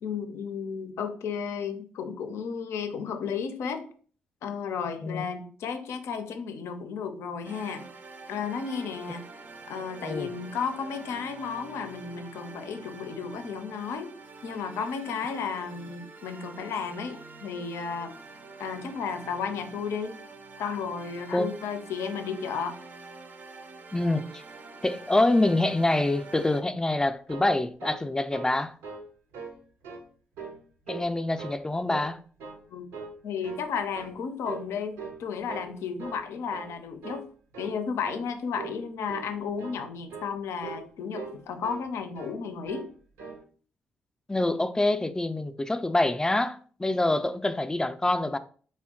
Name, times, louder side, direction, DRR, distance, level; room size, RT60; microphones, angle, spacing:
voice 1, 0.0-3.9 4.4-7.8 8.3-9.2 9.7-14.1 14.4-18.1 18.6-20.1 20.6-22.8 32.7-32.9 33.2-37.3 37.6-42.9, left 6 dB, 75° left, 0.5 m, -33 dB
sound 1, 7.4-26.6, right 4 dB, 45° right, 0.5 m, -46 dB
voice 2, 23.9-24.4 24.8-28.7 30.9-32.2 44.3-48.4, left 2 dB, 15° left, 0.3 m, -26 dB
sound 2, 27.3-28.6 28.8-29.1 29.3-30.0 30.3-31.1 31.4-32.1 32.4-32.6 32.9-33.7 33.9-34.2 34.4-34.7 35.0-35.7 36.0-36.2 36.5-36.7 37.0-37.3 37.5-37.8 38.0-38.3 38.6-38.8 39.1-39.3 39.6-39.8 40.1-40.3 40.6-40.9 41.1-41.9 42.1-42.4 42.6-42.9 43.2-43.4, right 4 dB, 85° right, 0.7 m, -41 dB
3.6 x 2.2 x 3.6 m
supercardioid pair, 50°, 5 cm